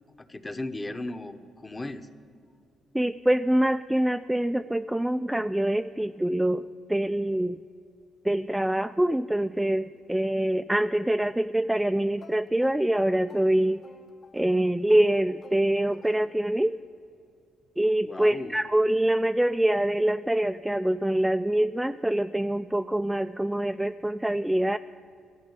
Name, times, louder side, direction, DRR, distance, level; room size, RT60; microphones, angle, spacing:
voice 1, 0.2-2.1 18.0-18.6, left 2 dB, 20° left, 9 dB, 0.9 m, -36 dB
voice 2, 2.9-7.6 8.2-13.8 14.3-16.8 17.8-24.8, right 1 dB, 5° right, 8 dB, 0.3 m, -25 dB
sound 1, 12.2-16.8, left 4 dB, 55° left, 1.1 m, -53 dB
14.0 x 8.4 x 9.5 m, 2.4 s
cardioid pair, 90°, 0 cm